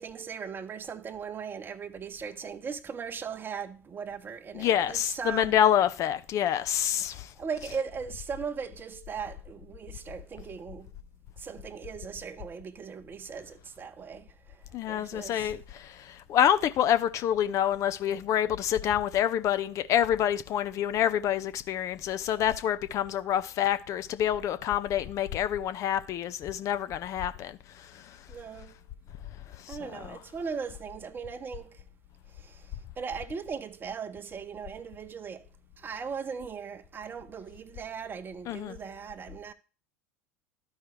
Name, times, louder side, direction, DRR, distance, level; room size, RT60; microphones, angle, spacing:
voice 1, 0.0-5.6 7.4-10.9 11.4-14.6 14.9-15.5 28.3-28.7 29.7-31.8 32.3-35.4 35.8-39.5, right 6 dB, 25° right, 0.7 m, -38 dB
voice 2, 4.5-7.3 14.7-27.6 29.7-30.2 38.5-38.8, left 10 dB, 40° left, 0.5 m, -27 dB
12.5 x 4.7 x 3.1 m
figure-of-eight pair, 75°, 8 cm